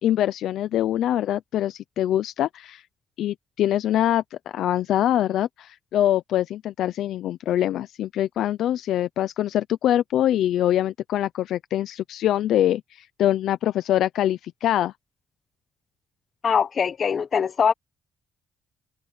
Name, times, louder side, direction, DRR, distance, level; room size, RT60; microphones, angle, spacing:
voice 1, 0.0-2.8 3.2-14.9, left 12 dB, 80° left, 0.6 m, -24 dB
voice 2, 16.4-17.7, left 6 dB, 50° left, 1.2 m, -22 dB
cardioid pair, 90°, 0 cm